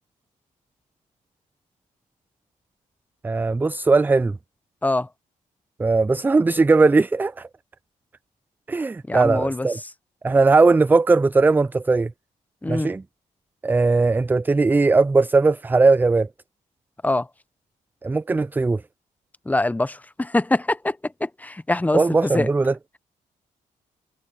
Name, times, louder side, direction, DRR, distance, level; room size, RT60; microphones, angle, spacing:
voice 1, 3.2-4.4 5.8-7.5 8.7-9.8 10.2-12.1 12.7-13.0 13.6-16.3 18.0-18.8 21.9-22.7, right 3 dB, 15° right, 0.3 m, -19 dB
voice 2, 9.1-9.7 12.6-12.9 17.0-17.3 19.5-21.0 21.2-22.5, left 2 dB, 10° left, 0.9 m, -23 dB
cardioid pair, 85°, 14 cm